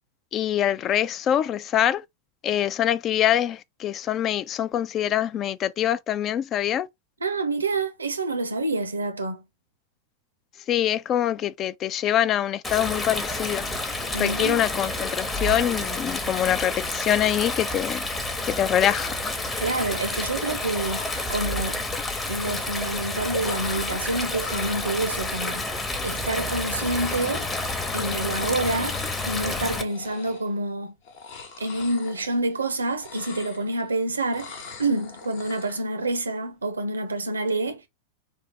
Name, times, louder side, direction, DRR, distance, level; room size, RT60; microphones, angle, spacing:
voice 1, 0.3-2.0 2.4-6.9 10.7-13.6 14.2-18.0 18.5-19.1, left 11 dB, 30° left, 0.3 m, -24 dB
voice 2, 7.2-9.4 14.1-14.6 19.6-21.8 22.3-25.6 26.0-27.5 27.9-29.0 29.3-30.9 31.6-37.9, right 2 dB, 75° right, 0.6 m, -27 dB
Stream, 12.6-29.8, left 2 dB, 15° left, 0.8 m, -29 dB
sound 1, 20.6-21.9 23.4-25.6 26.8-28.5 28.7-29.5 29.8-30.6 31.0-32.7 32.9-33.9 34.3-35.9, left 5 dB, 50° left, 1.0 m, -43 dB
3.6 x 2.5 x 3.5 m
figure-of-eight pair, 90°, 0 cm